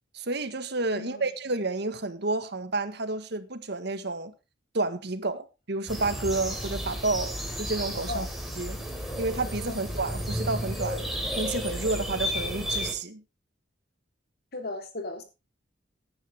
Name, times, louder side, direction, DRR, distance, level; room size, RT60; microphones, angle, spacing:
voice 1, 0.1-4.3 4.7-8.3 8.6-8.8 9.2-11.1 11.4-13.2, right 3 dB, 60° right, 1.6 m, -30 dB
voice 2, 0.9-1.3 8.1-8.3 9.7-9.8 14.5-15.2, left 2 dB, 55° left, 3.6 m, -36 dB
sound 1, 5.9-12.9, equal, ahead, 4.1 m, -32 dB
16.5 x 10.5 x 3.6 m
head